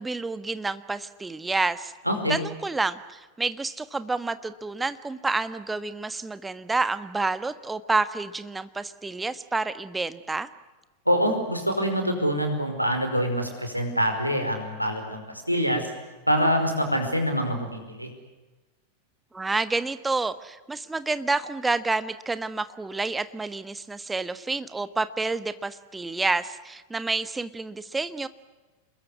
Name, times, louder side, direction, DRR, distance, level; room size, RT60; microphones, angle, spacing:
voice 1, 0.0-1.9 2.3-10.5 19.3-28.3, right 3 dB, 10° right, 13 dB, 1.4 m, -29 dB
voice 2, 2.0-2.4 11.0-15.9 16.3-18.1, equal, 90° right, 5 dB, 5.1 m, -25 dB
27.5 x 22.0 x 9.7 m, 1.2 s
figure-of-eight pair, 90°, 0 cm